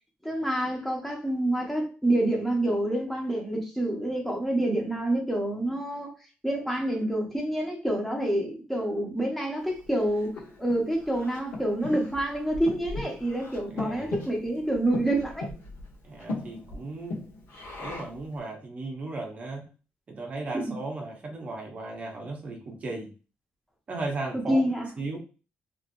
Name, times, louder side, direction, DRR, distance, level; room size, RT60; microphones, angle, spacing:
voice 1, 0.2-6.1 6.4-15.5 20.5-20.7 24.3-24.9, right 1 dB, 5° left, 0.9 m, -27 dB
Breathing, 9.8-18.3, left 2 dB, 90° left, 1.1 m, -39 dB
voice 2, 13.7-14.2 16.0-17.2 17.8-19.7 20.1-23.1 23.9-24.7 25.0-25.2, right 2 dB, 35° right, 0.7 m, -36 dB
2.9 x 2.8 x 2.6 m
cardioid pair, 145°, 4 cm